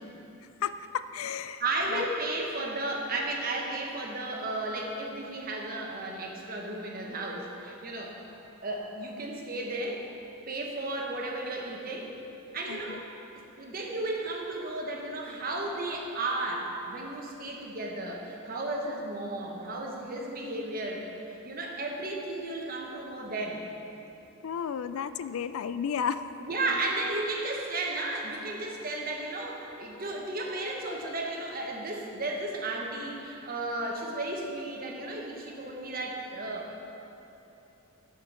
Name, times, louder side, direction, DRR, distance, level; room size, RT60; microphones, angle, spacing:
voice 1, 0.6-1.6 1.9-2.1 12.7-13.0 24.4-26.2, left 7 dB, 75° left, 12 dB, 0.3 m, -33 dB
voice 2, 1.6-8.2 8.6-10.0 10.5-12.2 12.5-13.0 13.6-23.6 26.4-36.9, right 2 dB, 45° right, 0 dB, 1.1 m, -34 dB
9.8 x 5.1 x 6.4 m, 3.0 s
head